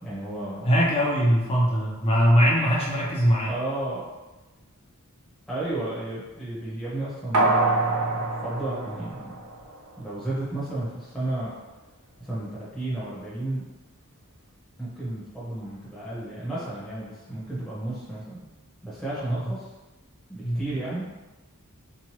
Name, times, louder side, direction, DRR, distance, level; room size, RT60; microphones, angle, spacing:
voice 1, 0.0-0.7 2.2-2.3 3.5-4.1 5.5-9.4 10.0-11.5 12.2-13.6 14.8-18.4 18.8-19.7 20.3-21.0, right 1 dB, ahead, -10 dB, 0.8 m, -33 dB
voice 2, 0.6-3.5 19.3-19.4 20.4-20.6, equal, 25° left, -5 dB, 0.5 m, -21 dB
sound 1, 7.3-9.9 10.3-10.4, right 2 dB, 85° right, 0.5 m, -25 dB
2.9 x 2.2 x 3.0 m, 1.1 s
head